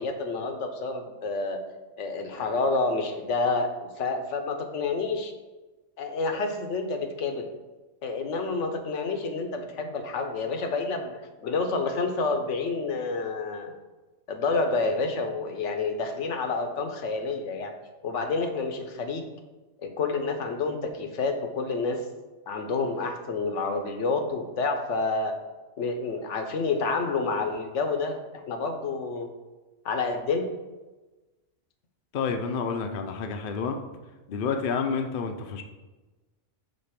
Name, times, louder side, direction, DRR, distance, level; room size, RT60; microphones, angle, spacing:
voice 1, 0.0-1.6 2.0-5.3 6.0-7.5 8.0-13.7 14.3-17.7 18.0-19.3 19.8-22.0 22.5-25.3 25.8-29.3 29.8-30.5, left 3 dB, 75° left, 6 dB, 1.0 m, -29 dB
voice 2, 32.1-33.8 34.3-35.6, left 5 dB, 55° left, 5 dB, 0.7 m, -29 dB
5.3 x 3.9 x 5.8 m, 1.2 s
omnidirectional pair, 1.3 m